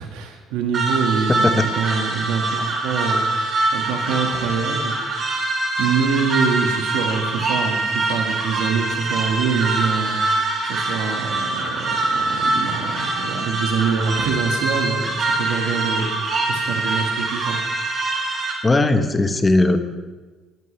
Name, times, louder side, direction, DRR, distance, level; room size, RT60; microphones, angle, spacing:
voice 1, 0.0-3.5 3.7-5.4 5.8-10.2 10.6-17.6, right 6 dB, 90° right, 3 dB, 1.8 m, -25 dB
sound 1, 0.7-18.5, right 2 dB, 45° right, 3.9 m, -24 dB
voice 2, 18.6-19.8, left 2 dB, 20° left, 8 dB, 1.2 m, -17 dB
20.5 x 9.2 x 3.4 m, 1.3 s
cardioid pair, 95°, 0 cm